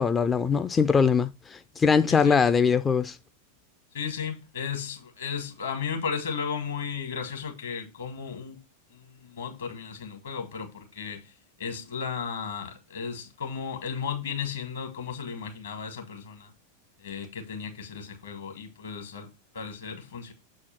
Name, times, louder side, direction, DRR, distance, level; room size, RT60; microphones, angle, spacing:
voice 1, 0.0-3.2, left 6 dB, 15° left, 0.4 m, -22 dB
voice 2, 2.1-2.4 3.9-8.6 8.9-11.3 11.6-16.5 17.0-19.3 19.5-20.3, left 6 dB, 65° left, 2.2 m, -35 dB
7.3 x 4.3 x 5.9 m
figure-of-eight pair, 90°, 0 cm